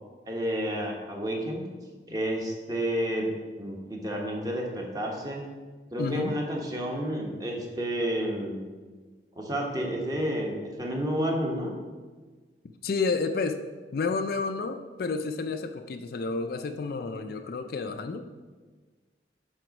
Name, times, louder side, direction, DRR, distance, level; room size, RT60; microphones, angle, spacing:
voice 1, 0.3-1.7 2.1-3.3 3.6-5.4 5.9-8.7 9.4-11.7, equal, 20° right, -1 dB, 1.1 m, -30 dB
voice 2, 6.0-6.4 12.8-13.6 13.9-18.2, left 4 dB, 55° left, 7 dB, 0.4 m, -30 dB
7.7 x 3.9 x 5.2 m, 1.4 s
head